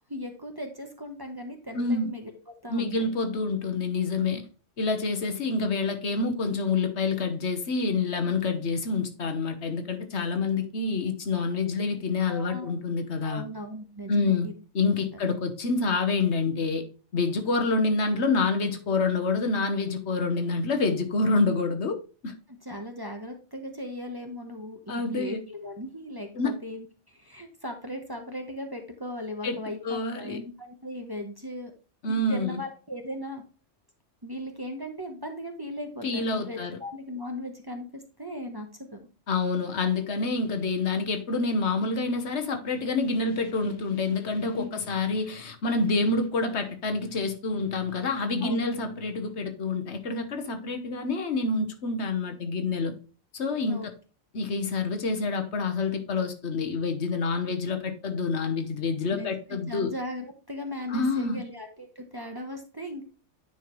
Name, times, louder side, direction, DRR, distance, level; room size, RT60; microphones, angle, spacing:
voice 1, 0.1-2.3 2.6-3.1 12.3-12.7 13.2-14.6 22.6-31.7 32.1-33.4 34.2-39.1 44.5-44.8 48.4-48.9 53.7-53.9 59.1-59.3 59.7-63.0, left 1 dB, 20° right, 0.9 m, -38 dB
voice 2, 1.7-2.1 2.7-4.4 4.8-13.4 14.1-14.5 14.7-16.8 17.1-22.3 24.9-25.4 26.3-26.6 29.4-30.4 32.0-32.6 36.0-36.8 39.3-52.9 53.3-53.8 54.3-59.9 60.9-61.4, left 3 dB, 70° left, 1.3 m, -27 dB
9.5 x 4.5 x 3.1 m
omnidirectional pair, 1.2 m